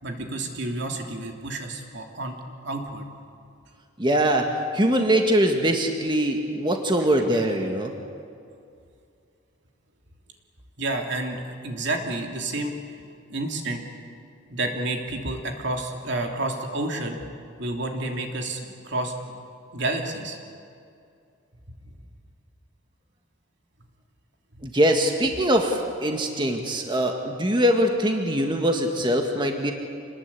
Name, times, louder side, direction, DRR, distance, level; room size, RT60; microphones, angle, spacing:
voice 1, 0.0-2.4 2.6-3.1 10.8-12.7 13.3-13.8 14.5-17.2 17.6-19.1 19.7-20.4, right 2 dB, 55° right, 2 dB, 2.9 m, -30 dB
voice 2, 4.0-4.5 4.7-7.9 24.6-29.7, equal, 20° right, 3 dB, 1.7 m, -22 dB
27.0 x 20.5 x 8.4 m, 2.4 s
head